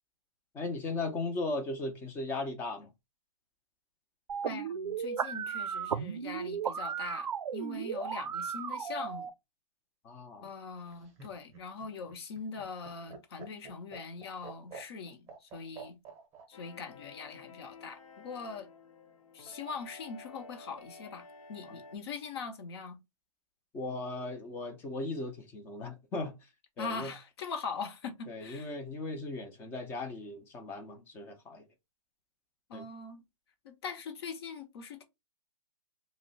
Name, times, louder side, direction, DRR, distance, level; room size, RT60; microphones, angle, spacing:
voice 1, 0.5-2.9 10.0-10.5 21.7-21.8 23.7-26.4 26.8-27.1 28.3-31.7 32.7-32.9, left 2 dB, 10° left, 0.5 m, -37 dB
sound 1, 4.3-9.3, right 7 dB, 90° right, 0.4 m, -35 dB
voice 2, 4.4-9.3 10.4-16.0 16.5-18.7 19.3-23.0 26.8-28.7 32.7-33.2 33.6-35.0, left 5 dB, 45° left, 0.9 m, -42 dB
Laughter, 10.8-16.5 17.8-18.4, right 4 dB, 15° right, 0.9 m, -49 dB
sound 2, 16.5-22.0, left 3 dB, 75° left, 0.8 m, -52 dB
2.8 x 2.1 x 4.0 m
hypercardioid pair, 150°, 18 cm